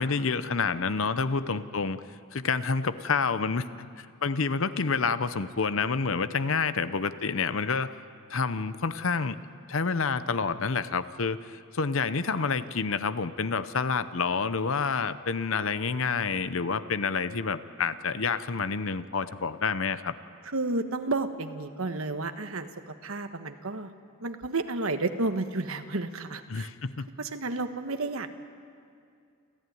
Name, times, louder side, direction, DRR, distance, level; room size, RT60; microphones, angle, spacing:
voice 1, 0.0-2.0 2.3-7.9 8.3-9.4 9.7-20.1 26.5-27.1, left 5 dB, 65° left, 13 dB, 0.8 m, -28 dB
voice 2, 20.5-23.9 24.2-26.7 27.2-28.3, right 2 dB, 75° right, 7 dB, 1.3 m, -31 dB
29.0 x 14.5 x 9.4 m, 2.3 s
head